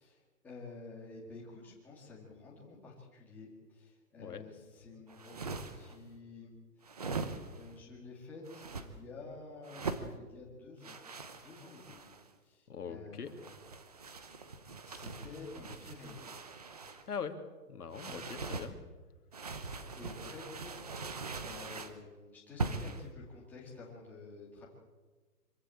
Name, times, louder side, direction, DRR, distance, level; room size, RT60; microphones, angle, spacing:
voice 1, 0.0-6.5 6.8-7.3 7.5-11.0 11.3-12.1 12.4-13.5 14.8-16.2 18.1-18.2 20.0-20.8 21.2-24.7, left 3 dB, 5° left, -5 dB, 2.3 m, -50 dB
sound 1, 5.1-6.0 6.8-7.7 8.5-8.9 9.6-10.1 10.8-12.3 13.3-17.1 17.9-18.7 19.3-22.0 22.6-23.1, right 4 dB, 25° right, 0.9 m, -41 dB
voice 2, 12.7-13.3 17.1-18.8, left 6 dB, 70° left, 8 dB, 2.6 m, -42 dB
25.5 x 15.5 x 8.7 m, 1.3 s
hypercardioid pair, 175°, 47 cm